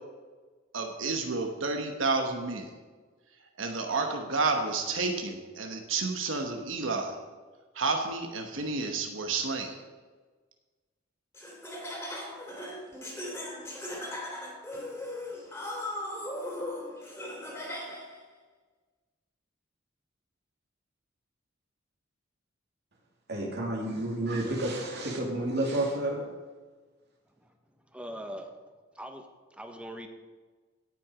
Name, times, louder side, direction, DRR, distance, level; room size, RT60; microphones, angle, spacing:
voice 1, 0.7-2.7 3.6-7.2 7.7-9.8, right 3 dB, 85° right, 3 dB, 1.1 m, -30 dB
Laughter, 11.3-18.2, left 1 dB, 15° left, 2.5 m, -38 dB
voice 2, 23.3-26.2, right 1 dB, 60° right, -1 dB, 2.6 m, -30 dB
voice 3, 27.9-28.5 28.9-30.1, equal, 5° right, 5 dB, 1.0 m, -41 dB
17.0 x 6.0 x 5.0 m, 1.4 s
head